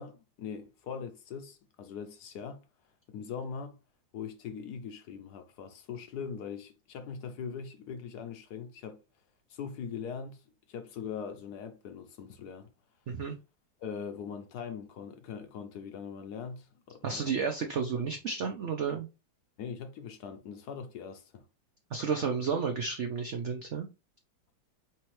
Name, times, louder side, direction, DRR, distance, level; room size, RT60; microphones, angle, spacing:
voice 1, 0.0-2.6 3.1-3.8 4.1-9.0 9.5-12.7 13.8-17.2 19.6-21.5, left 6 dB, 70° left, 1.1 m, -41 dB
voice 2, 17.0-19.1 21.9-23.9, right 5 dB, 80° right, 0.6 m, -32 dB
4.5 x 3.5 x 3.1 m
omnidirectional pair, 2.0 m